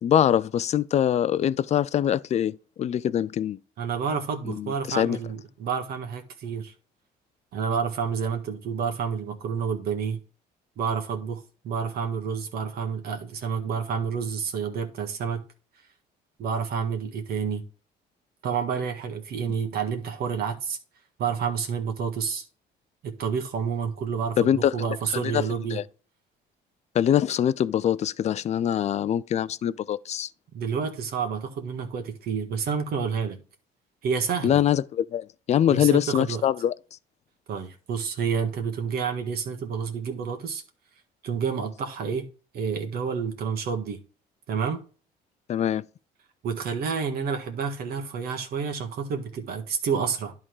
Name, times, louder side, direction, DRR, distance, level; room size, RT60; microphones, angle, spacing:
voice 1, 0.0-3.6 4.5-5.2 24.4-24.7 25.1-25.4 25.7-25.8 26.9-30.3 34.4-36.7 45.5-45.8, left 10 dB, 40° left, 0.4 m, -23 dB
voice 2, 3.8-6.7 7.5-10.2 10.8-15.5 16.4-17.6 18.4-20.8 21.2-22.4 23.0-25.8 30.5-33.4 34.0-34.6 35.7-36.4 37.5-40.6 41.2-42.3 42.5-44.0 44.5-44.8 46.4-50.3, right 6 dB, 65° right, 1.7 m, -29 dB
11.0 x 3.7 x 4.7 m
cardioid pair, 110°, 17 cm